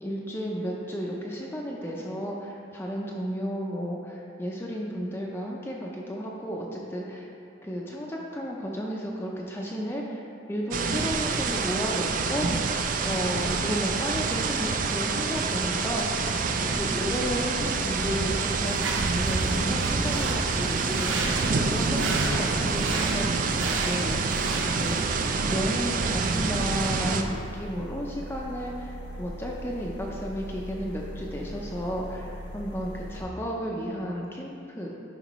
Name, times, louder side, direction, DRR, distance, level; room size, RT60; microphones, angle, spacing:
voice 1, 0.0-7.3 7.6-12.5 13.0-16.2 16.6-24.4 24.6-25.0 25.5-35.0, equal, 10° left, -2 dB, 0.5 m, -33 dB
sound 1, 10.7-27.2, right 4 dB, 45° right, 0.4 m, -27 dB
sound 2, 16.3-33.2, equal, 75° left, 0.8 m, -41 dB
sound 3, 17.7-25.0, right 3 dB, 85° right, 0.8 m, -34 dB
9.9 x 5.4 x 3.0 m, 2.6 s
head